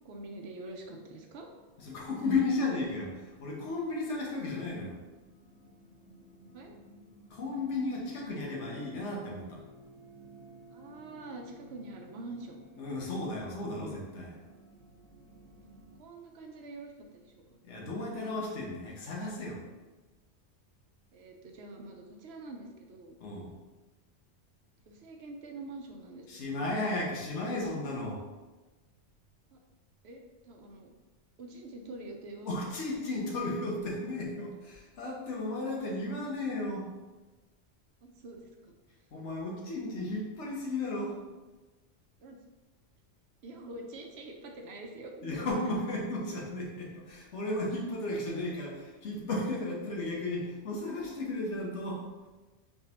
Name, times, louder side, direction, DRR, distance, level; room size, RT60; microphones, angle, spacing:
voice 1, 0.0-1.5 6.5-6.8 10.7-12.6 16.0-17.6 21.1-23.2 24.9-26.7 29.5-29.6 30.0-30.9 31.4-32.5 38.0-38.7 42.2-42.4 43.4-45.5, right 2 dB, 70° right, 2 dB, 0.8 m, -45 dB
sound 1, 1.1-16.0, equal, 5° left, 1.1 m, -56 dB
voice 2, 1.8-5.0 7.3-9.6 12.8-14.4 17.6-19.6 23.2-23.5 26.3-28.2 32.4-36.9 39.1-41.2 45.2-52.1, left 2 dB, 80° left, -2 dB, 1.2 m, -34 dB
4.4 x 3.4 x 2.9 m, 1.2 s
omnidirectional pair, 1.2 m